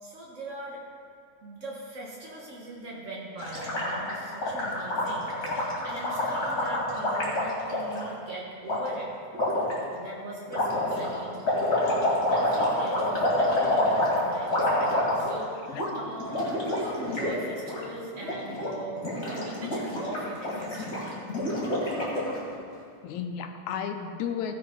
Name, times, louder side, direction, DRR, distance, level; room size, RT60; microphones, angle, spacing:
voice 1, 0.0-0.8 1.4-9.1 9.9-21.1, right 1 dB, 75° right, -3 dB, 0.6 m, -40 dB
Gurgling, 3.4-8.0 8.7-8.8 9.3-9.7 10.5-15.4 15.7-15.9 16.2-17.3 17.6-17.8 18.2-18.7 19.0-22.4, left 1 dB, 35° left, 2.7 m, -27 dB
voice 2, 15.7-16.1 23.0-24.5, left 7 dB, 80° left, 6 dB, 2.0 m, -34 dB
16.0 x 5.7 x 5.4 m, 2.3 s
omnidirectional pair, 3.5 m